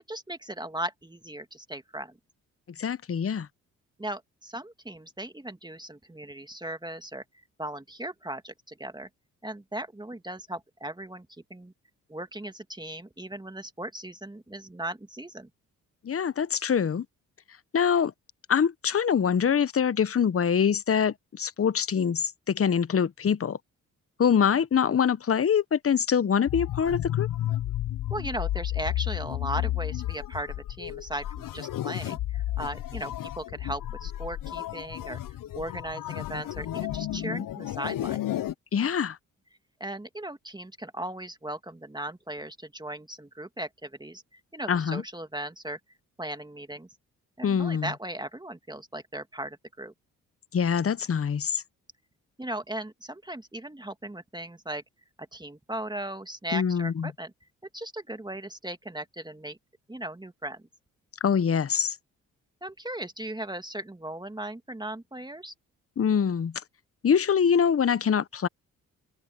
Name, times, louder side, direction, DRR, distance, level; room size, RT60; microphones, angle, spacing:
voice 1, 0.1-2.2 4.0-7.2 7.6-9.1 9.4-11.3 11.5-11.7 12.1-15.5 28.1-35.2 35.6-38.2 39.8-45.8 46.2-46.9 47.4-49.9 52.4-54.8 55.2-57.3 57.7-59.6 59.9-60.6 62.6-65.5, right 1 dB, 10° right, 2.1 m, -37 dB
voice 2, 2.8-3.5 16.0-17.1 17.7-18.1 18.5-23.6 24.2-27.3 37.1-37.5 38.7-39.2 44.7-45.0 47.4-47.9 50.5-51.6 56.5-57.1 61.2-62.0 66.0-66.5 67.0-68.5, left 7 dB, 40° left, 1.1 m, -24 dB
sound 1, 26.5-38.5, left 13 dB, 65° left, 1.1 m, -32 dB
hypercardioid pair, 50°, 36 cm